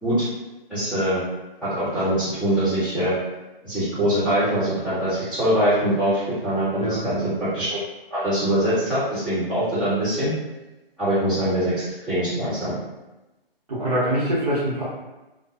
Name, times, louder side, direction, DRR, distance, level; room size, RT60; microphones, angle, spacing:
voice 1, 0.7-1.2 1.6-3.1 3.6-7.3 7.5-7.8 8.1-10.3 11.0-11.7 12.1-12.7, right 1 dB, 5° left, -19 dB, 1.1 m, -23 dB
voice 2, 6.8-7.1 13.7-14.8, equal, 40° right, -9 dB, 0.9 m, -24 dB
2.5 x 2.2 x 2.4 m, 1.0 s
figure-of-eight pair, 150°, 29 cm